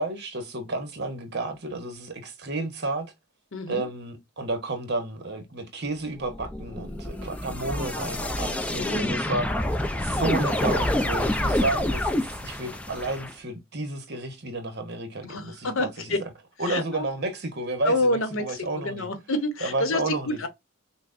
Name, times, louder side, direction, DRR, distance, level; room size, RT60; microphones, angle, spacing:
voice 1, 0.0-3.1 3.7-9.5 10.0-16.1 16.6-19.1 19.6-20.4, right 2 dB, 50° right, 1.0 m, -31 dB
voice 2, 3.5-3.8 8.8-9.1 15.2-16.2 16.7-17.1 17.8-18.6 18.8-20.5, left 2 dB, 65° left, 0.8 m, -28 dB
sound 1, 6.2-13.3, left 1 dB, 5° left, 0.4 m, -27 dB
5.9 x 2.0 x 2.5 m
head